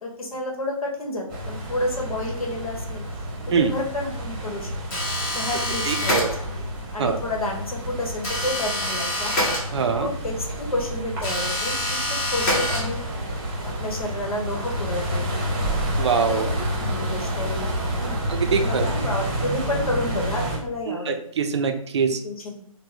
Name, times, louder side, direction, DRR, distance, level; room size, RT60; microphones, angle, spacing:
voice 1, 0.0-3.0 3.6-4.7 5.3-6.5 6.9-9.3 9.9-13.0 13.6-15.3 16.1-18.2 18.6-21.2 22.1-22.6, left 1 dB, 80° left, 0 dB, 1.1 m, -30 dB
sound 1, 1.3-20.6, right 1 dB, 20° right, 0.8 m, -29 dB
sound 2, 4.9-6.7 8.2-10.1 11.2-13.3, left 1 dB, 15° left, 0.7 m, -26 dB
voice 2, 5.9-6.3 7.0-7.2 9.7-10.1 16.0-16.4 18.3-18.8 20.9-22.2, right 6 dB, 50° right, 7 dB, 0.4 m, -23 dB
3.0 x 2.1 x 3.8 m, 0.64 s
figure-of-eight pair, 145°, 18 cm